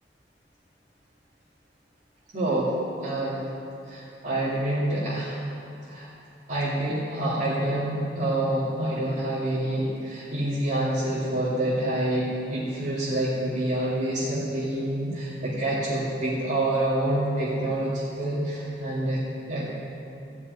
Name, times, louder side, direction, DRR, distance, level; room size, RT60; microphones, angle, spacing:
voice 1, 2.3-3.5 3.9-5.4 5.8-6.1 6.5-19.2 19.5-19.7, right 1 dB, 45° right, -10 dB, 2.4 m, -27 dB
15.0 x 5.4 x 9.3 m, 2.7 s
head